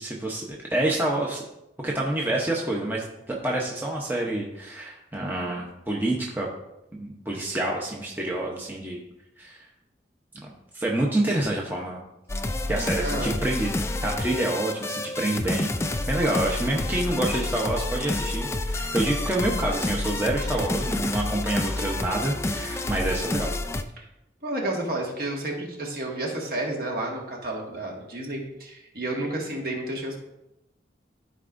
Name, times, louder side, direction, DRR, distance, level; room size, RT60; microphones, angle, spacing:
voice 1, 0.0-1.4 1.8-6.5 7.0-9.0 9.4-9.6 10.7-12.0 12.7-13.7 14.0-15.7 16.1-23.5, right 1 dB, 10° right, -2 dB, 0.8 m, -27 dB
sound 1, 12.3-23.8, left 2 dB, 15° left, 0.3 m, -29 dB
voice 2, 13.0-13.3 24.0-24.1 24.4-30.2, right 1 dB, 55° right, -1 dB, 1.7 m, -31 dB
13.5 x 4.8 x 2.6 m, 0.87 s
head